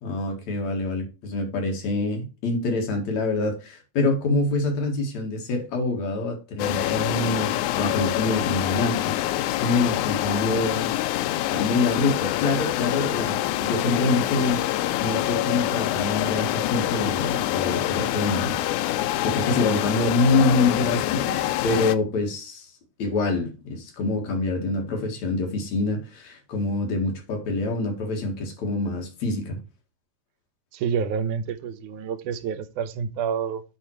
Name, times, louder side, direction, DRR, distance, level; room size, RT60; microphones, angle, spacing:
voice 1, 0.0-10.9 11.5-22.7 23.0-29.6, left 3 dB, 70° left, 3.1 m, -26 dB
sound 1, 6.6-22.0, left 14 dB, 85° left, 2.0 m, -26 dB
voice 2, 30.7-33.6, right 7 dB, 85° right, 2.3 m, -28 dB
9.2 x 4.4 x 4.5 m
omnidirectional pair, 3.4 m